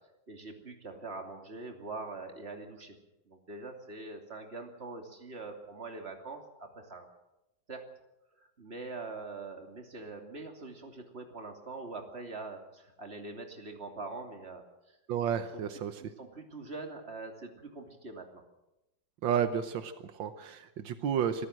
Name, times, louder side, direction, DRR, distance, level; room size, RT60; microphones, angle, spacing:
voice 1, 0.3-3.0 3.3-7.1 7.7-7.8 8.4-15.0 15.5-15.6 16.0-18.4, right 3 dB, 35° right, 3 dB, 3.0 m, -43 dB
voice 2, 15.1-16.0 19.2-21.5, right 8 dB, 85° right, 10 dB, 1.7 m, -31 dB
24.5 x 14.0 x 7.7 m, 0.93 s
omnidirectional pair, 2.0 m